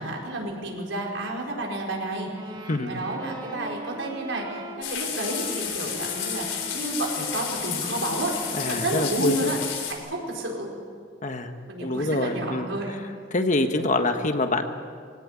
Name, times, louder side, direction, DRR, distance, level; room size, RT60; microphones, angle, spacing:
voice 1, 0.0-9.6 9.9-10.7 11.7-13.0, right 2 dB, 80° right, -1 dB, 4.7 m, -31 dB
sound 1, 2.3-9.4, right 1 dB, 20° right, 1.5 m, -41 dB
sound 2, 4.8-9.9, left 8 dB, 85° left, 3.7 m, -31 dB
voice 2, 8.5-9.5 11.2-11.5 11.8-12.7 13.3-14.6, left 2 dB, 40° left, 7 dB, 1.4 m, -25 dB
22.5 x 17.5 x 8.7 m, 2.1 s
head